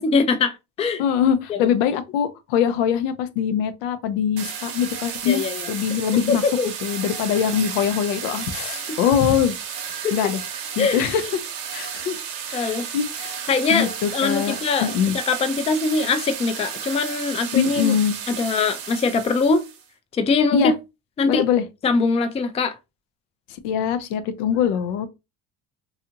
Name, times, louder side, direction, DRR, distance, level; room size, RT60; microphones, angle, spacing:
voice 1, 0.0-1.0 1.5-1.6 5.3-5.7 6.3-6.7 10.0-10.2 10.8-11.0 12.5-12.8 13.5-17.9 18.4-19.6 20.1-20.7 21.2-21.4 21.8-22.8, left 4 dB, 20° left, 0.3 m, -22 dB
voice 2, 1.0-6.5 6.8-9.5 9.9-10.4 10.8-11.2 11.7-12.2 12.5-13.4 13.7-15.2 17.5-18.1 20.5-20.7 21.2-21.6 23.5-25.1, left 8 dB, 90° left, 0.5 m, -23 dB
sound 1, 4.4-19.8, right 8 dB, 70° right, 0.8 m, -33 dB
2.7 x 2.4 x 2.7 m
supercardioid pair, 85°, 37 cm